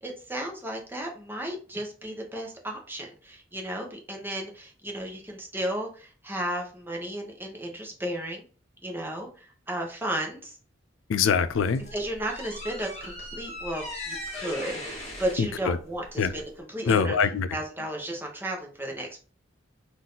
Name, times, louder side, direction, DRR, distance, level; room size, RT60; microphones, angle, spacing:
voice 1, 0.0-8.4 8.8-10.5 11.9-17.2 17.5-19.2, right 1 dB, 10° right, 0.9 m, -34 dB
voice 2, 11.1-11.8 15.4-15.8 16.2-16.3 16.9-17.5, left 6 dB, 75° left, 0.4 m, -23 dB
sound 1, 11.5-16.6, left 1 dB, 35° left, 1.5 m, -39 dB
4.0 x 2.6 x 3.8 m
head